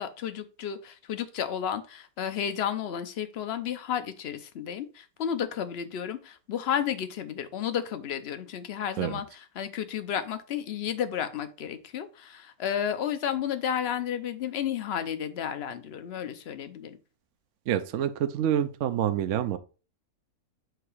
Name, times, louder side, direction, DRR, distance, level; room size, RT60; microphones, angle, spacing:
voice 1, 0.0-17.0, left 9 dB, 50° left, 10 dB, 0.8 m, -32 dB
voice 2, 17.7-19.6, right 10 dB, 65° right, 9 dB, 0.8 m, -27 dB
7.8 x 2.9 x 4.7 m, 0.34 s
omnidirectional pair, 1.6 m